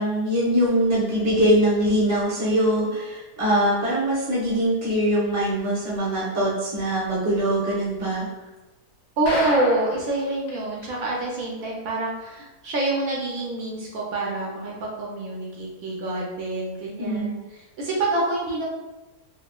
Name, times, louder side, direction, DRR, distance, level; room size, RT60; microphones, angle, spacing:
voice 1, 0.0-8.2 17.0-17.4, right 1 dB, 15° right, -7 dB, 0.6 m, -22 dB
voice 2, 9.2-17.3 17.8-18.7, right 2 dB, 70° right, -2 dB, 1.0 m, -26 dB
sound 1, 9.3-10.1 10.5-10.6 10.8-10.9 11.4-11.5, left 2 dB, 75° left, 1.2 m, -30 dB
3.4 x 2.0 x 2.2 m, 1.1 s
omnidirectional pair, 1.6 m